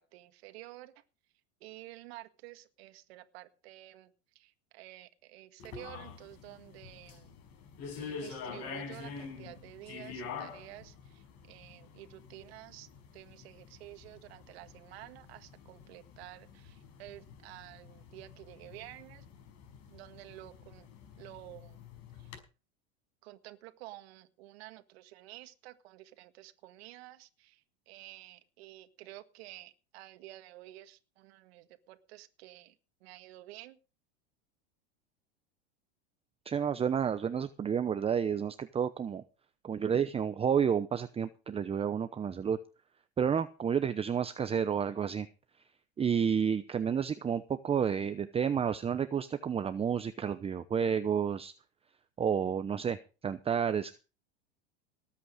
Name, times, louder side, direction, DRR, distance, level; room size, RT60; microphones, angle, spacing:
voice 1, 0.1-1.0 1.6-7.3 8.0-19.3 19.9-20.9 21.2-21.8 22.2-22.3 23.2-33.8, right 16 dB, 70° right, 9 dB, 1.8 m, -51 dB
Classroom High Ceiling, 5.6-22.4, left 5 dB, 50° left, 5.3 m, -47 dB
voice 2, 36.5-39.2 39.6-42.6 43.2-45.3 46.0-51.5 52.2-53.0 53.2-54.0, right 7 dB, 20° right, 12 dB, 0.8 m, -30 dB
19.0 x 8.6 x 5.1 m, 0.33 s
hypercardioid pair, 110°, 32 cm